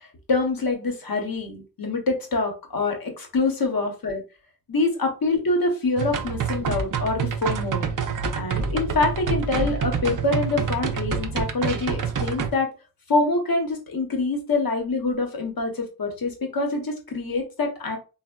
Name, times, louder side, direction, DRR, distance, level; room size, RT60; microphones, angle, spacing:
voice 1, 0.3-4.2 4.7-7.8 8.3-12.7 13.1-18.0, left 3 dB, 70° left, 3 dB, 0.8 m, -25 dB
sound 1, 6.0-12.5, right 6 dB, 60° right, 0.5 m, -27 dB
3.3 x 2.0 x 2.2 m, 0.32 s
cardioid pair, 40°, 37 cm